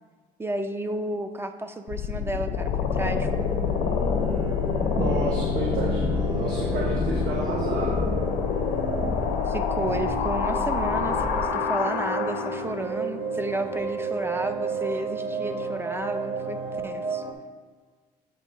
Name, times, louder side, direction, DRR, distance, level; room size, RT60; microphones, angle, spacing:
voice 1, 0.4-3.3 9.5-16.6 16.8-17.2, right 1 dB, 15° right, 8 dB, 0.3 m, -32 dB
sound 1, 1.9-12.8, left 6 dB, 85° left, 0.8 m, -27 dB
sound 2, 2.3-17.3, right 2 dB, 30° right, 0.9 m, -32 dB
voice 2, 5.0-8.0, right 3 dB, 75° right, -2 dB, 1.0 m, -30 dB
8.5 x 3.0 x 5.2 m, 1.5 s
cardioid pair, 110°, 17 cm